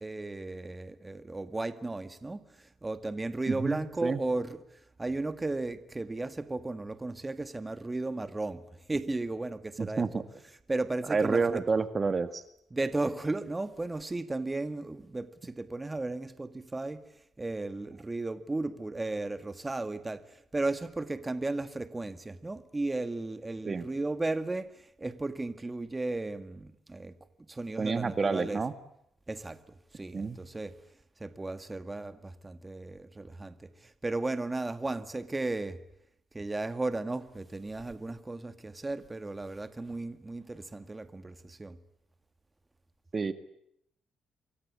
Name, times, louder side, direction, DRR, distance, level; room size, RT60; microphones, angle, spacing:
voice 1, 0.0-4.6 5.0-10.2 10.7-11.6 12.7-17.1 17.4-27.2 27.5-28.6 29.3-30.8 31.2-35.8 36.3-41.8, right 2 dB, 20° right, 1.9 m, -35 dB
voice 2, 3.5-4.2 9.8-10.2 11.1-12.4 23.6-23.9 27.8-28.7 30.1-30.4 43.1-43.3, right 4 dB, 35° right, 1.8 m, -29 dB
28.5 x 23.0 x 8.6 m
cardioid pair, 90°, 0 cm